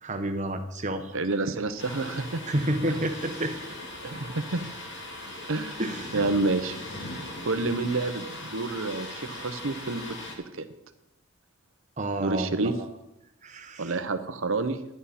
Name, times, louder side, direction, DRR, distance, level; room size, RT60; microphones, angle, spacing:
voice 1, 0.0-1.2 2.5-3.5 5.8-6.3 12.0-12.9 13.4-13.9, right 1 dB, 35° right, 6 dB, 1.1 m, -30 dB
voice 2, 1.1-2.4 4.0-4.7 5.5-5.8 6.1-6.8 7.4-10.2 10.6-10.7 12.2-12.7 13.8-14.8, right 3 dB, 65° right, 9 dB, 0.9 m, -28 dB
Thunder, 1.8-10.3, left 1 dB, 55° left, 2.3 m, -39 dB
11.5 x 11.0 x 4.3 m, 0.91 s
head